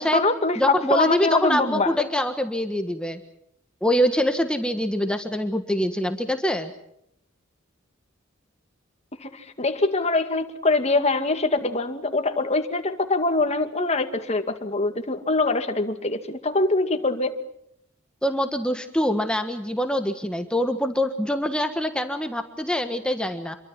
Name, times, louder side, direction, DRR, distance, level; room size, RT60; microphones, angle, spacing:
voice 1, 0.0-2.0 9.2-17.3, left 3 dB, 35° left, 7 dB, 2.3 m, -24 dB
voice 2, 0.6-3.2 3.8-6.7 18.2-23.5, equal, 5° left, 7 dB, 1.4 m, -24 dB
27.5 x 23.5 x 5.9 m, 0.74 s
head